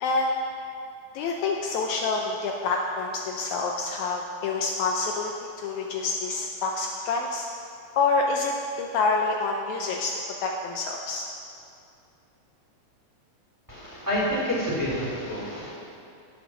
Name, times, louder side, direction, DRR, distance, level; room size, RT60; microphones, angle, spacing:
voice 1, 0.0-0.3 1.1-5.3 5.6-7.5 8.0-10.1 10.4-11.2, left 3 dB, 90° left, 1 dB, 1.6 m, -27 dB
voice 2, 13.7-15.8, equal, 5° right, -6 dB, 2.6 m, -28 dB
10.5 x 8.3 x 6.2 m, 2.6 s
omnidirectional pair, 4.2 m